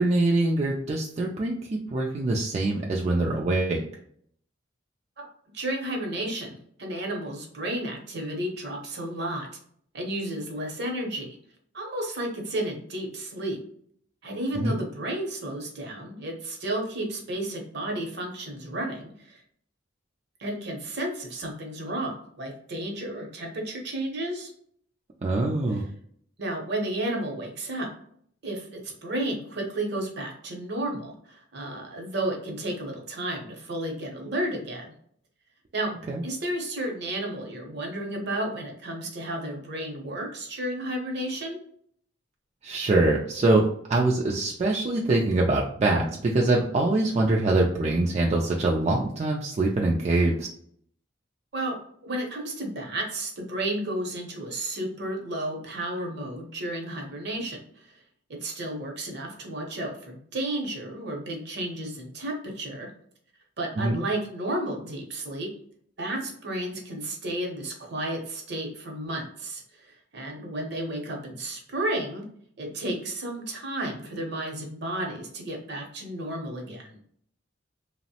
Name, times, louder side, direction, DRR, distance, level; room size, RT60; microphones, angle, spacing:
voice 1, 0.0-1.5 1.9-3.8 14.6-14.8 25.2-25.8 36.1-36.2 42.6-50.5 63.8-64.0, right 2 dB, 35° right, -1 dB, 0.3 m, -24 dB
voice 2, 5.5-9.5 9.9-11.4 11.7-13.6 14.2-19.4 20.4-24.5 25.7-25.8 26.4-27.9 28.4-34.9 35.7-35.9 36.2-41.6 51.5-51.7 52.0-58.0 58.3-62.9 63.6-65.5 66.0-72.2 72.6-77.0, right 1 dB, 60° right, 1 dB, 0.7 m, -32 dB
3.0 x 2.0 x 2.8 m, 0.64 s
head